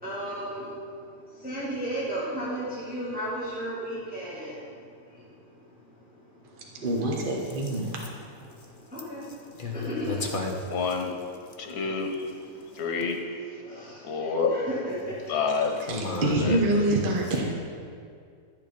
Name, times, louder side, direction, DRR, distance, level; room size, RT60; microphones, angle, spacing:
voice 1, 0.0-0.8 1.3-4.6 5.1-5.2 8.9-9.2 9.7-10.2 12.1-12.2 13.6-15.3, equal, 5° right, -9 dB, 1.9 m, -34 dB
voice 2, 6.7-8.0 15.8-17.5, right 1 dB, 40° right, -1 dB, 1.0 m, -26 dB
voice 3, 9.2-10.8 15.9-16.4, left 2 dB, 40° left, 1 dB, 1.0 m, -33 dB
voice 4, 10.7-11.1 11.6-12.1 12.8-13.2 14.0-14.5 15.3-15.8 16.4-16.6, left 5 dB, 90° left, 3 dB, 1.6 m, -27 dB
11.0 x 6.7 x 5.1 m, 2.3 s
omnidirectional pair, 1.6 m